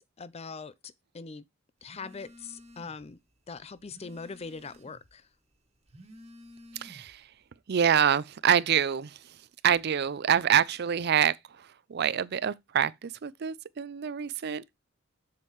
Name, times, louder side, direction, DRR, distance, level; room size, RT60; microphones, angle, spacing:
voice 1, 0.2-1.5 1.8-3.2 3.5-5.2, left 4 dB, 30° left, 0.5 m, -42 dB
Telephone, 1.8-3.1 3.4-5.1 5.7-7.2, left 1 dB, 30° right, 1.6 m, -52 dB
voice 2, 6.7-7.2 7.7-9.2 9.6-14.8, right 8 dB, 55° right, 0.5 m, -26 dB
7.6 x 7.4 x 3.0 m
head